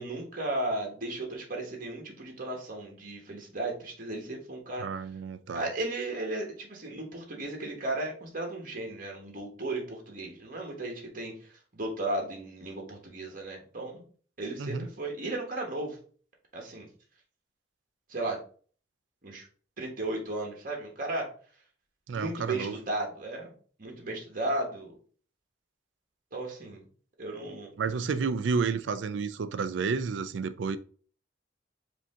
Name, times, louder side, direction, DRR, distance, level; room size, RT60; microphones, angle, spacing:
voice 1, 0.0-4.8 5.5-14.0 14.4-16.0 16.5-16.9 18.1-18.4 19.2-19.5 19.8-21.3 22.1-23.5 23.8-24.9 26.3-26.9 27.2-27.7, right 2 dB, 50° right, 1.3 m, -35 dB
voice 2, 4.8-5.7 14.6-14.9 22.1-22.7 27.8-30.8, right 5 dB, 75° right, 0.4 m, -31 dB
4.9 x 2.8 x 3.6 m
head